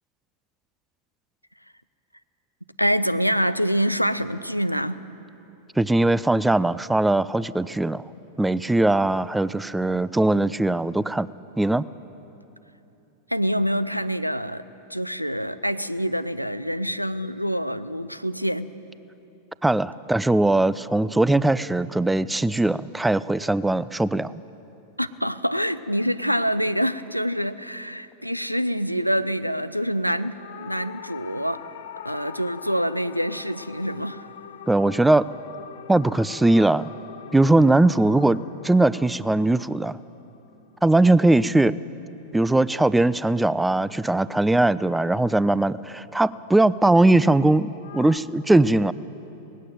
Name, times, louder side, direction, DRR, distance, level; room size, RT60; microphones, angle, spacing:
voice 1, 2.8-5.0 13.3-14.6 14.9-18.7 25.0-31.6 32.0-34.3, equal, 90° right, 15 dB, 0.6 m, -26 dB
voice 2, 5.8-8.0 8.4-11.3 11.6-11.8 19.6-24.3 34.7-35.3 35.9-36.9 37.3-38.4 38.6-40.0 40.8-41.8 42.3-48.9, right 2 dB, 5° right, 19 dB, 0.4 m, -20 dB
sound 1, 30.3-40.9 47.8-48.2, left 9 dB, 60° left, 1.0 m, -43 dB
19.0 x 16.0 x 9.1 m, 2.9 s
figure-of-eight pair, 90°, 0 cm